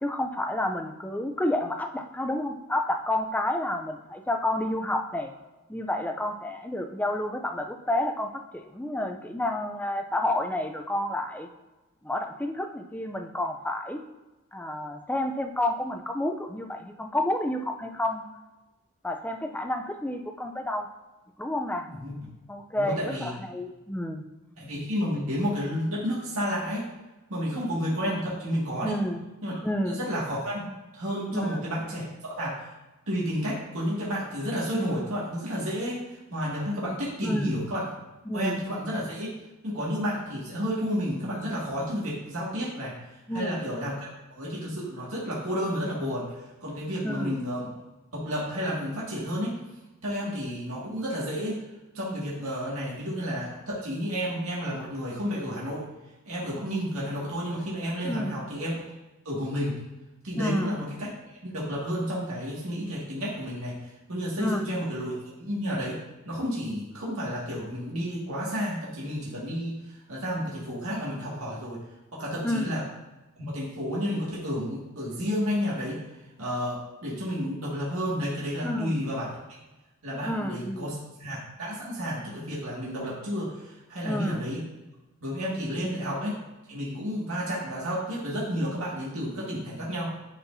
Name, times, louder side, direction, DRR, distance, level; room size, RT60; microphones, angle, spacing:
voice 1, 0.0-5.3 5.7-11.5 12.0-14.0 14.5-18.2 19.0-20.9 21.4-21.9 22.5-24.2 28.8-29.2 29.6-30.0 31.3-31.5 37.2-37.6 38.3-38.6 43.3-43.7 47.0-47.4 58.0-58.3 60.4-60.7 64.4-64.7 72.4-72.8 78.6-78.9 80.2-80.9 84.0-84.4 85.8-86.0, left 1 dB, 5° left, 5 dB, 0.4 m, -30 dB
voice 2, 22.8-23.3 24.6-26.8 27.3-29.0 29.4-29.6 29.9-32.5 33.1-36.0 36.3-37.8 38.3-39.3 39.6-42.9 43.3-46.3 46.6-47.7 48.1-49.6 50.0-51.6 51.9-55.8 56.3-58.8 59.3-59.7 60.2-61.1 61.4-63.8 64.1-69.8 70.1-71.8 72.1-72.8 73.5-76.0 76.4-79.3 80.0-80.9 81.2-83.6 83.9-84.6 85.2-86.4 86.7-90.1, equal, 80° right, -6 dB, 1.9 m, -31 dB
10.5 x 4.4 x 2.6 m, 1.1 s
head